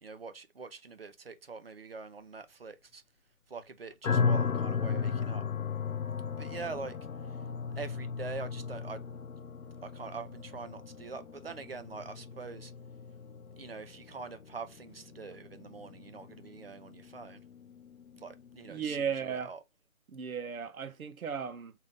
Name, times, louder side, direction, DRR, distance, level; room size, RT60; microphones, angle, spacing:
voice 1, 0.0-3.0 3.5-5.4 6.4-7.0 7.8-9.0 9.8-12.7 13.6-17.4 18.1-19.6, right 4 dB, 45° right, 0.6 m, -44 dB
sound 1, 4.0-19.0, left 6 dB, 85° left, 1.0 m, -36 dB
voice 2, 18.7-19.5 20.1-21.7, right 7 dB, 85° right, 0.9 m, -35 dB
3.9 x 2.7 x 3.5 m
hypercardioid pair, 175°, 41 cm